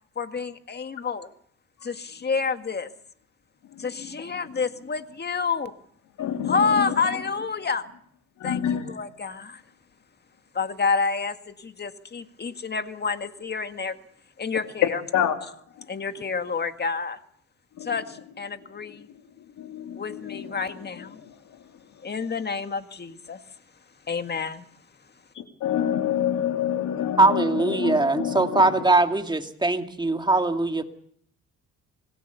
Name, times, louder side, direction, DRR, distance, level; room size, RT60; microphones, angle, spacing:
voice 1, 0.2-1.3 1.8-2.9 3.8-5.7 6.5-7.9 8.4-9.6 10.5-14.0 14.4-15.0 15.9-17.2 17.8-19.1 20.0-21.2 22.0-23.4 24.1-24.6, left 5 dB, 35° left, 9 dB, 1.8 m, -29 dB
voice 2, 6.2-6.8 8.4-8.8 15.1-15.4 17.8-17.9 19.6-20.5 25.4-28.7, left 9 dB, 75° left, 5 dB, 3.1 m, -27 dB
voice 3, 27.2-30.8, right 2 dB, 15° right, 6 dB, 2.2 m, -21 dB
26.0 x 19.0 x 6.9 m, 0.65 s
cardioid pair, 90°, 30 cm